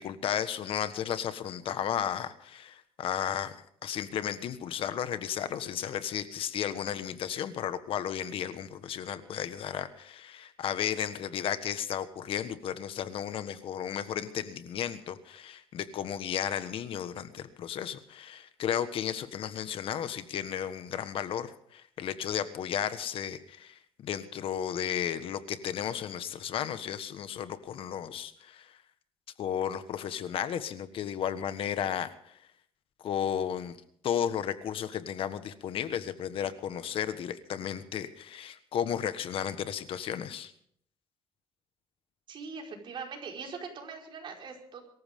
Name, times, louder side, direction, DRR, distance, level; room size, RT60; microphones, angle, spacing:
voice 1, 0.0-28.8 29.4-32.4 33.0-33.8 34.0-40.5, left 9 dB, 65° left, 12 dB, 1.4 m, -34 dB
voice 2, 42.3-45.0, right 5 dB, 55° right, 1 dB, 5.0 m, -42 dB
23.5 x 14.5 x 3.7 m, 0.65 s
cardioid pair, 120°, 10 cm